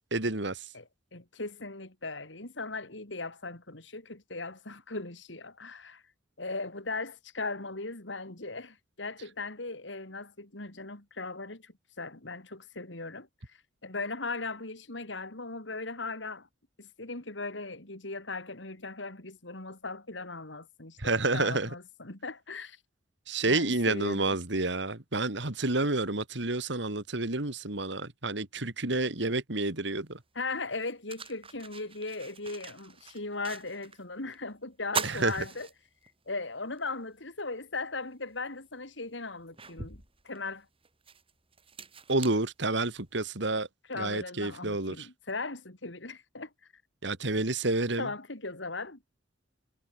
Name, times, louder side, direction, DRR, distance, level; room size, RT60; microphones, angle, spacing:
voice 1, 0.1-0.7 21.0-21.7 23.3-30.2 35.0-35.4 42.1-43.7 44.0-45.1 47.0-48.1, right 2 dB, 70° right, 2.7 m, -29 dB
voice 2, 0.7-6.0 6.4-16.5 16.8-21.0 21.3-22.8 23.4-24.4 30.4-35.7 36.3-40.7 43.9-46.5 48.0-49.0, left 3 dB, 75° left, 3.6 m, -38 dB
sound 1, 30.0-30.1 30.7-34.0 34.3-34.4 34.8-36.3 36.8-36.9 38.3-38.4 39.0-43.2, right 5 dB, 30° right, 5.9 m, -41 dB
head